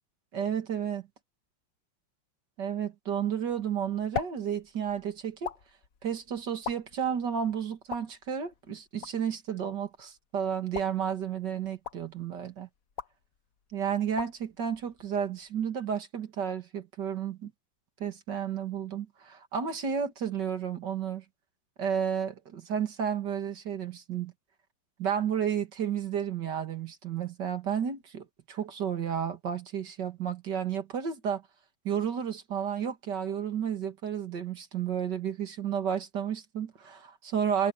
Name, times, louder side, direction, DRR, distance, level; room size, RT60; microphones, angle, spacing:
voice 1, 0.3-1.0 2.6-5.5 6.0-12.7 13.7-17.5 18.0-21.2 21.8-24.3 25.0-31.4 31.8-37.7, right 8 dB, 60° right, 2.4 m, -32 dB
sound 1, 3.5-15.7, left 8 dB, 50° left, 1.3 m, -44 dB
omnidirectional pair, 2.1 m